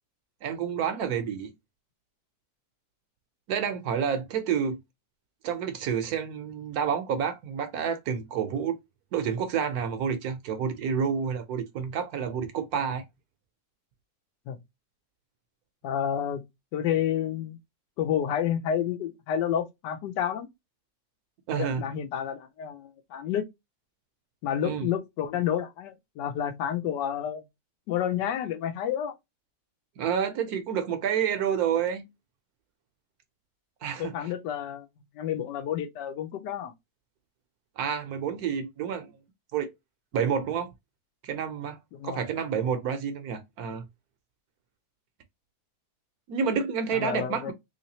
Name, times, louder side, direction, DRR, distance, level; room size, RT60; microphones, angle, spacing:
voice 1, 0.4-1.5 3.5-4.8 5.4-8.8 9.1-13.0 21.5-21.8 24.6-24.9 30.0-32.1 33.8-34.1 37.8-39.1 39.5-39.7 40.1-40.7 41.2-41.8 42.0-43.8 46.3-47.5, right 7 dB, 70° right, 1.0 m, -29 dB
voice 2, 15.8-16.4 16.7-17.6 18.0-20.5 21.5-23.4 24.4-27.4 27.9-29.1 34.0-34.9 35.1-36.7 41.9-42.2 46.9-47.5, left 9 dB, 80° left, 1.3 m, -30 dB
3.2 x 3.1 x 2.7 m
omnidirectional pair, 1.8 m